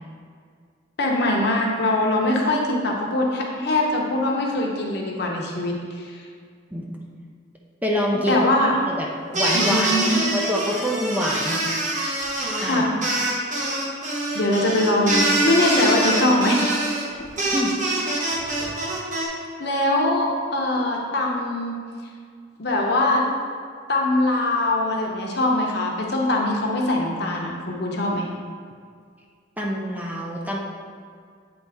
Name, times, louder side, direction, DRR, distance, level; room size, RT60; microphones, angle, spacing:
voice 1, 1.0-6.2 8.3-8.7 9.5-10.2 12.6-12.9 14.3-16.8 19.2-21.8 22.6-23.2 23.9-28.3, left 1 dB, 55° left, -1 dB, 0.9 m, -22 dB
voice 2, 7.8-8.4 8.9-11.6 12.6-12.9 17.5-17.7 29.6-30.6, equal, 10° right, -2 dB, 0.5 m, -26 dB
sound 1, 9.3-19.3, right 1 dB, 40° right, 1.0 m, -24 dB
7.9 x 4.1 x 3.5 m, 2.1 s
head